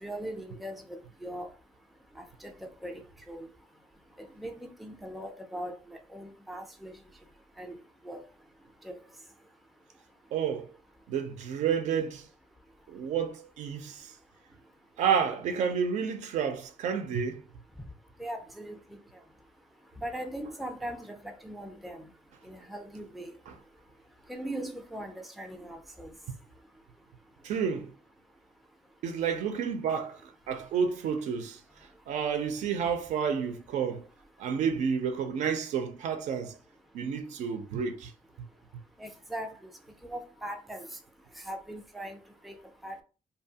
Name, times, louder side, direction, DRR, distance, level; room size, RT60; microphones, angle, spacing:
voice 1, 0.0-1.5 2.4-2.9 3.3-3.5 4.4-7.0 7.6-7.8 8.0-8.2 8.8-9.0 18.2-18.8 20.0-22.1 22.5-23.3 24.3-26.1 39.0-39.6 40.0-40.8 41.5-42.2 42.4-42.6 42.8-43.0, right 1 dB, ahead, 0.4 m, -39 dB
voice 2, 10.3-10.8 11.1-12.3 12.9-14.1 15.0-17.4 23.5-23.6 27.4-28.0 29.0-34.1 34.4-36.6 36.9-38.1 38.4-38.5, right 7 dB, 75° right, 0.5 m, -30 dB
2.7 x 2.3 x 2.7 m
cardioid pair, 160°, 12 cm